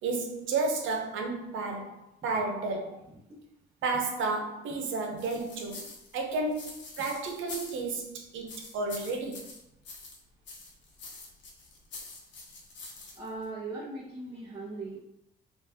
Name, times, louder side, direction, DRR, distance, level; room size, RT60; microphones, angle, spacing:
voice 1, 0.0-3.0 3.8-9.4, right 3 dB, 85° right, 0.7 m, -32 dB
sound 1, 5.2-8.1 8.5-10.2 10.4-13.4, left 3 dB, 65° left, 0.9 m, -45 dB
voice 2, 13.1-15.0, right 2 dB, 20° right, 1.0 m, -39 dB
3.0 x 2.4 x 3.5 m
cardioid pair, 90°, 20 cm